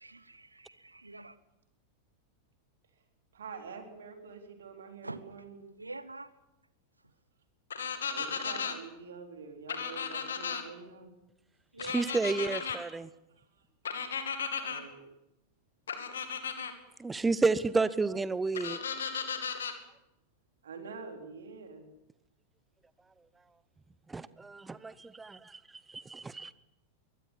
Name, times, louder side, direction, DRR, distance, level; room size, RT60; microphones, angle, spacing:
voice 1, 0.0-1.3 5.0-5.2 5.8-6.3 11.7-12.1, right 2 dB, 85° right, 16 dB, 1.0 m, -44 dB
voice 2, 3.3-5.6 8.1-11.1 13.4-13.6 14.6-15.0 20.6-21.8, right 5 dB, 65° right, 4 dB, 4.0 m, -46 dB
sound 1, 7.7-8.7 9.7-10.6 11.8-12.8 13.8-14.8 15.9-16.7 18.5-19.7, left 6 dB, 65° left, 2.4 m, -35 dB
voice 3, 11.8-13.1 17.0-18.8 24.1-25.6 25.9-26.5, right 3 dB, 10° right, 18 dB, 0.7 m, -31 dB
23.0 x 18.5 x 7.3 m, 0.89 s
figure-of-eight pair, 90°, 0 cm